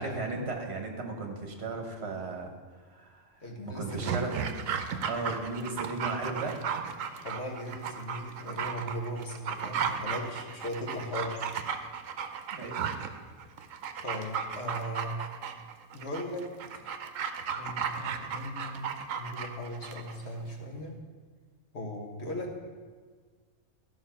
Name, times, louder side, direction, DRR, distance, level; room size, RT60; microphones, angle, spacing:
voice 1, 0.0-2.5 2.8-4.4 5.0-6.9 7.1-7.3 12.5-12.9, right 3 dB, 55° right, 2 dB, 1.6 m, -36 dB
voice 2, 3.4-4.2 7.2-11.9 14.0-15.2 15.9-16.5 17.6-21.0 21.7-22.7, equal, 55° left, 1 dB, 1.6 m, -38 dB
Dog, 3.9-20.2 20.5-20.6, right 7 dB, 75° right, 1.1 m, -35 dB
13.0 x 5.6 x 5.7 m, 1.5 s
omnidirectional pair, 1.4 m